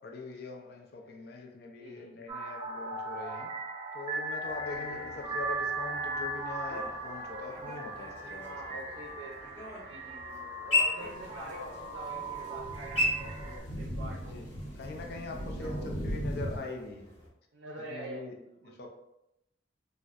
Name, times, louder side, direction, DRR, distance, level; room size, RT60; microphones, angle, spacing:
voice 1, 0.0-3.5 3.9-8.5 14.2-14.5 14.8-17.1 17.9-18.4 18.6-18.9, left 3 dB, 55° left, 2 dB, 0.5 m, -42 dB
voice 2, 1.7-2.3 4.7-5.4 8.3-9.5 9.8-14.5 15.4-15.9 17.5-18.9, right 1 dB, 90° right, -1 dB, 0.5 m, -46 dB
sound 1, 2.3-13.6, right 2 dB, 30° right, 0.5 m, -38 dB
sound 2, 4.4-17.3, left 2 dB, 30° left, 1.1 m, -38 dB
sound 3, 11.0-16.6, equal, 85° left, 0.9 m, -39 dB
4.1 x 2.1 x 2.4 m, 0.86 s
head